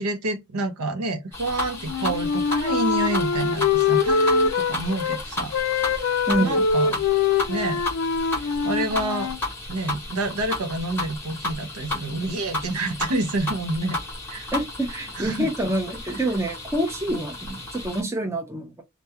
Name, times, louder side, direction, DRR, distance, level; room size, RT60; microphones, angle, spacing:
voice 1, 0.0-7.0 7.5-7.8 8.6-9.3 9.7-14.0 14.3-14.5 14.9-15.5 17.1-17.2, right 2 dB, 90° right, 0.6 m, -28 dB
sound 1, 1.3-18.0, left 2 dB, 10° left, 0.9 m, -33 dB
Wind instrument woodwind instrument, 1.8-5.2 5.5-9.4, left 5 dB, 65° left, 0.4 m, -23 dB
voice 2, 6.3-6.6 14.5-18.8, right 1 dB, 10° right, 0.5 m, -27 dB
2.3 x 2.2 x 2.7 m
head